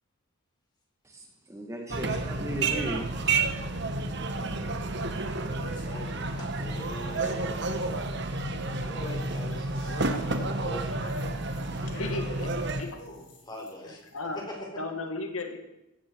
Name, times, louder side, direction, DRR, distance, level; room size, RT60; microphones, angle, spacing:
voice 1, 1.0-3.1, equal, 15° right, 2 dB, 1.9 m, -36 dB
sound 1, 1.9-12.8, right 3 dB, 55° right, 1.4 m, -30 dB
sound 2, 5.4-6.2 6.7-8.1 8.4-14.5, left 2 dB, 55° left, 4.4 m, -51 dB
voice 2, 5.5-7.6 8.8-9.7 10.0-11.0 13.4-14.0 14.3-14.8, equal, 20° left, 0 dB, 4.4 m, -42 dB
voice 3, 11.8-12.5 12.8-13.0 14.1-14.4 14.8-15.6, left 2 dB, 75° left, 4 dB, 2.0 m, -34 dB
16.0 x 16.0 x 4.8 m, 0.93 s
head